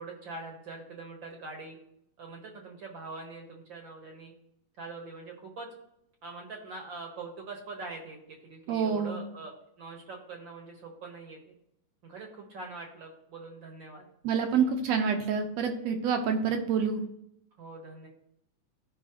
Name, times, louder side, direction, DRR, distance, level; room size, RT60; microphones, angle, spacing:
voice 1, 0.0-1.8 2.2-4.3 4.8-5.7 6.2-11.5 12.0-14.1 17.6-18.1, right 3 dB, 50° right, 2 dB, 1.5 m, -43 dB
voice 2, 8.7-9.2 14.2-17.0, right 6 dB, 70° right, 5 dB, 1.8 m, -27 dB
16.0 x 5.6 x 2.9 m, 0.76 s
omnidirectional pair, 3.6 m